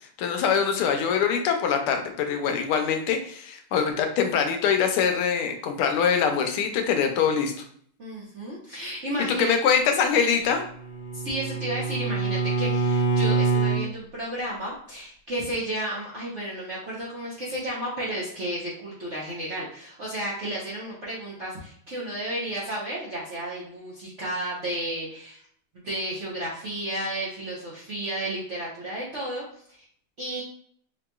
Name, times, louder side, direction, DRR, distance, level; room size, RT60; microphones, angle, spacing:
voice 1, 0.2-7.5 9.3-10.6, left 7 dB, 85° left, 5 dB, 1.5 m, -23 dB
voice 2, 8.0-9.6 11.1-25.4 25.8-29.5 30.2-30.4, right 1 dB, 55° right, -7 dB, 0.8 m, -32 dB
Bowed string instrument, 10.5-13.9, right 4 dB, 45° left, 1.0 m, -25 dB
5.3 x 2.9 x 2.2 m, 0.62 s
omnidirectional pair, 2.4 m